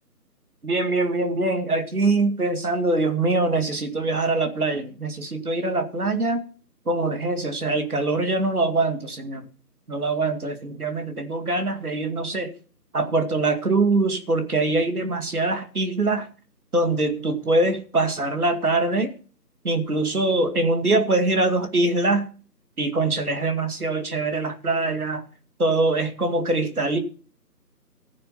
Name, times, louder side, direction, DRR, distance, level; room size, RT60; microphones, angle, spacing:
voice 1, 0.6-6.4 6.9-9.5 9.9-12.5 12.9-16.3 16.7-19.1 19.6-22.3 22.8-25.2 25.6-27.0, right 2 dB, 60° right, 2.2 m, -23 dB
15.5 x 6.6 x 5.6 m
figure-of-eight pair, 175°, 50 cm